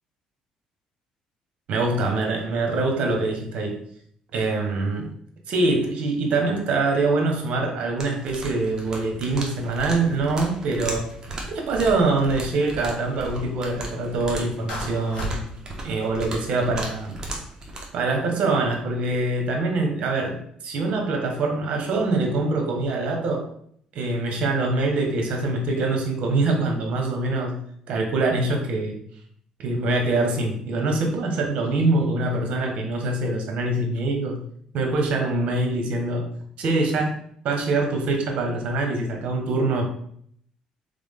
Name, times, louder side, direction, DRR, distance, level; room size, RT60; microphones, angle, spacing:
voice 1, 1.7-3.8 4.3-5.1 5.5-11.1 11.5-15.4 15.8-17.2 17.9-23.4 23.9-29.0 29.6-34.4 34.7-36.3 36.6-37.1 37.4-39.8, right 2 dB, 65° right, 2 dB, 1.2 m, -24 dB
sound 1, 8.0-17.9, right 2 dB, 30° right, 1.1 m, -36 dB
Clapping, 14.7-15.4, left 2 dB, 65° left, 1.6 m, -35 dB
3.8 x 3.6 x 3.7 m, 0.65 s
cardioid pair, 105°, 2 cm